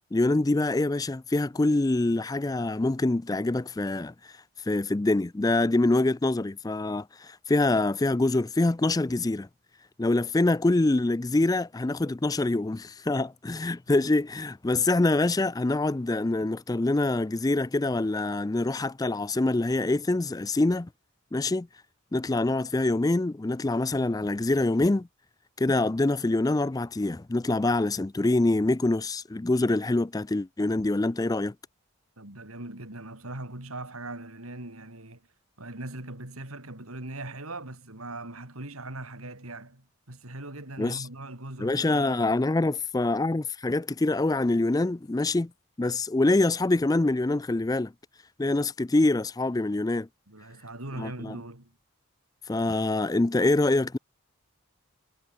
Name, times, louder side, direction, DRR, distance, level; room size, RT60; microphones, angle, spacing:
voice 1, 0.1-4.3 4.7-9.5 10.0-20.9 21.3-21.7 22.1-25.1 25.6-31.5 40.8-41.1 41.6-45.5 45.8-47.9 48.4-50.1 51.0-51.4 52.5-54.0, left 2 dB, 15° left, 0.4 m, -25 dB
voice 2, 32.2-35.2 35.6-42.3 50.3-51.7, right 2 dB, 90° right, 4.7 m, -40 dB
head